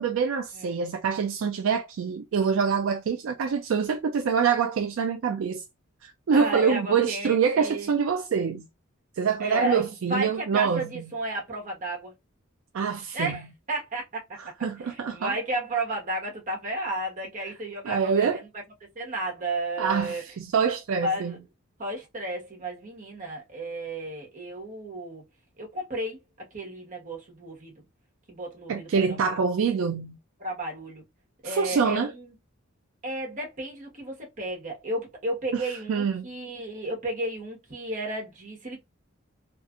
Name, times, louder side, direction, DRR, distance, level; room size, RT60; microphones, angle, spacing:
voice 1, 0.0-5.6 6.0-8.7 9.2-11.0 12.7-13.4 14.4-15.4 17.8-18.4 19.8-21.3 28.7-30.2 31.4-32.1 35.5-36.3, right 6 dB, 65° right, 0.4 m, -25 dB
voice 2, 6.3-7.9 9.4-12.1 13.1-14.2 14.8-18.5 18.9-20.2 21.0-21.4 21.8-25.2 25.6-26.2 26.5-27.8 28.3-29.4 30.4-31.0 31.4-32.3 33.0-38.8, right 1 dB, 40° right, 1.1 m, -33 dB
2.7 x 2.4 x 2.4 m
head